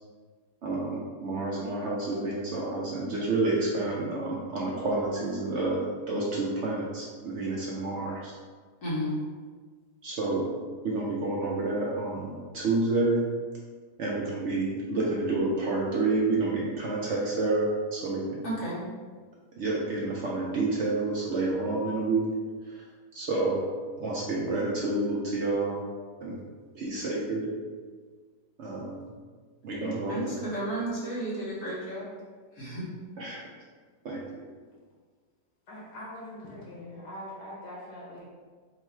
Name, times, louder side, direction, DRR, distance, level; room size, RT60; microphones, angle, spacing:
voice 1, 0.6-8.3 10.0-10.5 10.8-13.2 14.0-18.2 19.6-22.2 23.1-23.6 24.0-25.8 26.2-26.4 26.8-27.5 28.6-29.0 29.6-30.3 33.2-33.4 34.0-34.2, right 2 dB, 65° right, -4 dB, 0.7 m, -29 dB
voice 2, 8.8-9.2 18.4-18.8 29.8-32.1 32.6-32.8, right 1 dB, 70° left, -8 dB, 1.7 m, -33 dB
voice 3, 35.7-38.2, left 1 dB, 85° left, -5 dB, 1.5 m, -42 dB
3.8 x 2.3 x 4.3 m, 1.5 s
omnidirectional pair, 1.7 m